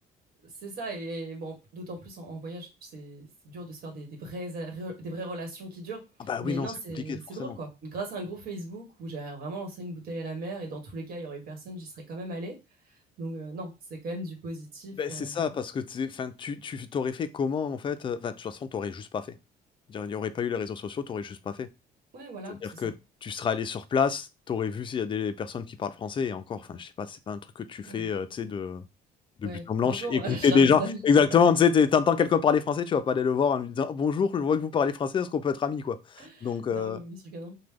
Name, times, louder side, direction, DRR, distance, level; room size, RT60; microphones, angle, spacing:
voice 1, 0.6-6.0 6.4-12.5 13.2-15.5 22.1-22.9 27.8-28.1 29.4-31.0 31.3-31.4 36.2-37.6, right 2 dB, 65° right, 1.3 m, -38 dB
voice 2, 6.3-6.7 7.1-7.6 15.0-19.3 19.9-21.7 22.5-22.9 23.2-27.4 27.7-28.8 29.4-37.0, left 6 dB, 30° left, 0.4 m, -27 dB
3.0 x 2.2 x 3.4 m
cardioid pair, 110°, 17 cm